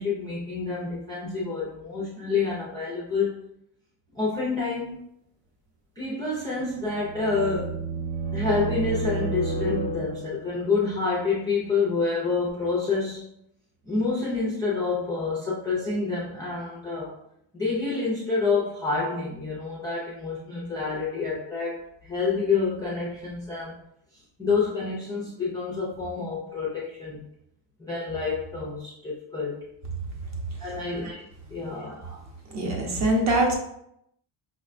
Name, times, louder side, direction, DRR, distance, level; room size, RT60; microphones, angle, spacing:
voice 1, 0.0-3.3 4.1-5.0 6.0-7.8 8.3-13.2 13.9-17.1 17.5-23.7 24.4-27.2 27.8-29.6 30.6-31.1 31.5-32.1, left 4 dB, 10° left, -7 dB, 0.3 m, -28 dB
sound 1, 6.6-10.5, right 4 dB, 70° right, 1.1 m, -31 dB
voice 2, 32.5-33.5, right 1 dB, 40° right, 0 dB, 0.7 m, -24 dB
5.2 x 2.1 x 2.4 m, 0.76 s
cardioid pair, 175°, 45 cm